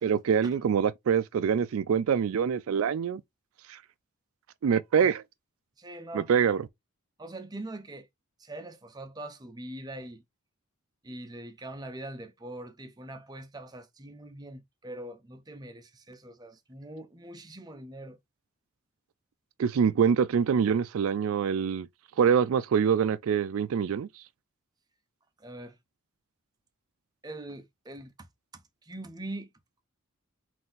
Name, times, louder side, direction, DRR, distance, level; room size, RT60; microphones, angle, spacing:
voice 1, 0.0-3.2 3.7-3.8 4.6-5.2 6.1-6.7 19.6-21.9 22.2-24.1, right 7 dB, 75° right, 0.3 m, -25 dB
voice 2, 5.8-6.3 7.2-8.1 8.4-10.2 11.0-18.2 25.4-25.7 27.2-28.3 28.5-29.5, right 1 dB, 20° right, 0.5 m, -42 dB
3.9 x 2.6 x 3.9 m
head